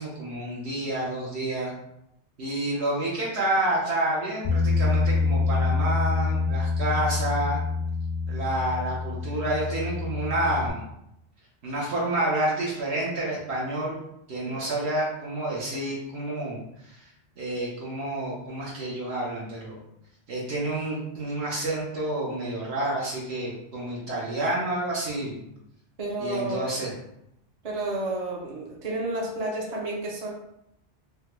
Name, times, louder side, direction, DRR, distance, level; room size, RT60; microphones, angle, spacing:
voice 1, 0.0-1.7 2.4-7.6 8.3-10.8 11.6-14.0 14.3-16.6 16.9-17.1 17.4-19.8 20.3-25.4 26.2-26.9, right 1 dB, 70° right, -4 dB, 1.0 m, -29 dB
Bass guitar, 4.4-10.7, left 4 dB, 60° left, 0.6 m, -26 dB
voice 2, 26.0-26.7 27.6-30.3, right 2 dB, 40° right, -3 dB, 0.6 m, -31 dB
3.4 x 2.1 x 2.9 m, 0.79 s
omnidirectional pair, 1.2 m